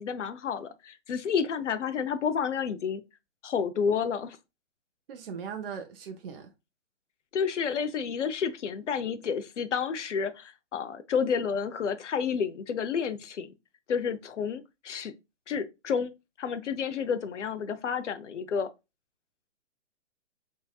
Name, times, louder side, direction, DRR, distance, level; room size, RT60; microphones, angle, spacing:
voice 1, 0.0-3.0 3.4-4.4 7.3-13.5 13.9-15.1 15.5-16.1 16.4-18.7, left 6 dB, 75° left, 0.6 m, -30 dB
voice 2, 5.1-6.5, right 6 dB, 50° right, 0.6 m, -39 dB
3.5 x 3.2 x 2.3 m
figure-of-eight pair, 135°, 36 cm